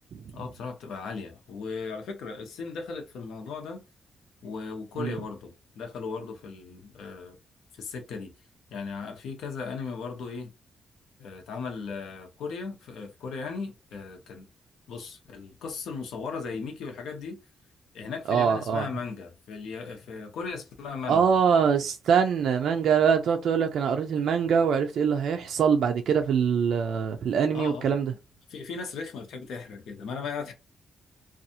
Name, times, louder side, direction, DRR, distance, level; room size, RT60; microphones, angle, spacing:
voice 1, 0.3-3.8 4.4-7.4 7.7-8.3 8.7-10.5 11.2-14.5 14.9-17.4 17.9-21.4 27.5-27.9 28.5-30.5, left 5 dB, 90° left, 0.8 m, -37 dB
voice 2, 18.3-18.9 21.1-28.1, right 7 dB, 70° right, 0.3 m, -23 dB
2.6 x 2.3 x 2.7 m
cardioid pair, 145°, 0 cm